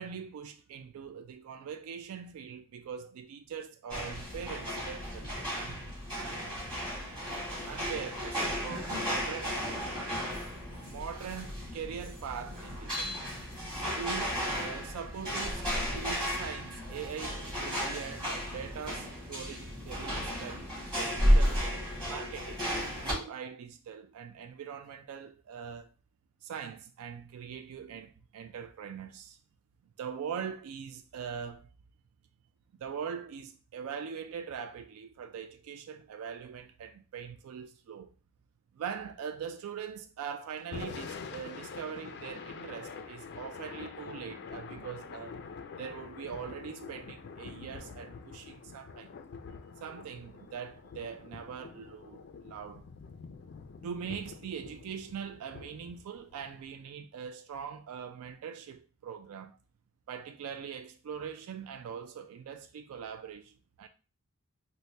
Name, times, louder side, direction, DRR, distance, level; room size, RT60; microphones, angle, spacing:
voice 1, 0.0-5.9 6.2-6.7 7.7-9.6 10.8-13.2 13.7-20.7 21.0-21.6 22.0-22.6 23.0-25.9 26.4-29.4 30.0-31.7 32.8-38.1 38.7-45.4 45.7-49.1 49.8-52.8 53.8-59.6 60.1-63.9, right 7 dB, 70° right, 0.3 m, -42 dB
sound 1, 3.9-23.1, equal, 20° right, 1.8 m, -33 dB
Thunder / Rain, 40.6-56.8, left 5 dB, 50° left, 0.4 m, -46 dB
4.0 x 2.1 x 3.2 m
head